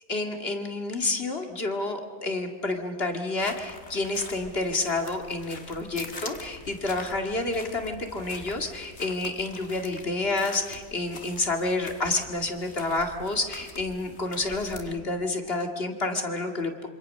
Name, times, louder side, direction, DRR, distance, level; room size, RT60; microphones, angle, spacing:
voice 1, 0.1-16.9, left 2 dB, 65° left, 4 dB, 2.4 m, -29 dB
sound 1, 3.4-15.0, left 3 dB, 85° left, 2.1 m, -44 dB
26.5 x 25.5 x 6.5 m, 1.5 s
omnidirectional pair, 1.1 m